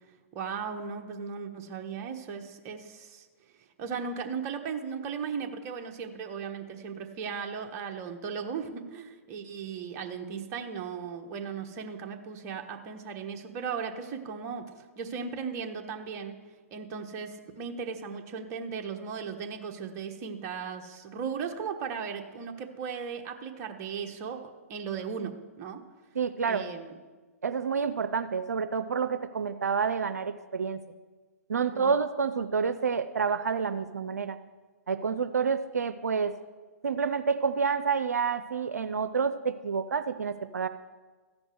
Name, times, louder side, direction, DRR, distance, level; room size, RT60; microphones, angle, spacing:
voice 1, 0.3-3.3 3.6-16.4 16.7-24.4 24.7-25.8 26.4-26.9 31.5-32.0, right 6 dB, 35° right, 4 dB, 1.2 m, -37 dB
voice 2, 26.1-26.7 27.4-30.8 31.5-34.4 34.9-36.3 36.8-40.7, right 5 dB, 85° right, 11 dB, 0.5 m, -28 dB
14.0 x 5.3 x 7.8 m, 1.3 s
hypercardioid pair, 130°, 8 cm